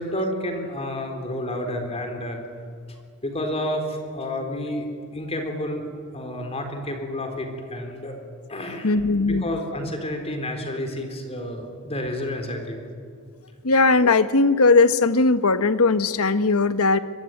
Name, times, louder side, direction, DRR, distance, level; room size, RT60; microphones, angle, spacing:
voice 1, 0.0-2.4 3.2-5.9 6.1-8.2 8.5-9.0 9.2-12.8, left 1 dB, 30° left, 5 dB, 3.9 m, -30 dB
voice 2, 8.8-9.4 13.6-17.0, left 3 dB, 70° left, 11 dB, 1.2 m, -18 dB
24.5 x 22.0 x 9.2 m, 2.2 s
head